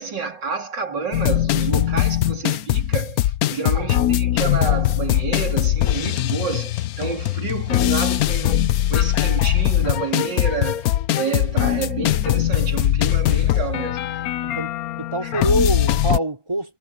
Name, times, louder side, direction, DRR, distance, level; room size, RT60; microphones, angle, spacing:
voice 1, 0.0-14.3 15.2-15.3, right 5 dB, 85° right, 3.9 m, -29 dB
sound 1, 1.1-16.2, left 13 dB, 65° left, 1.0 m, -21 dB
voice 2, 3.7-4.2 14.4-14.7 15.0-16.8, right 2 dB, 15° right, 3.5 m, -25 dB
omnidirectional pair, 1.9 m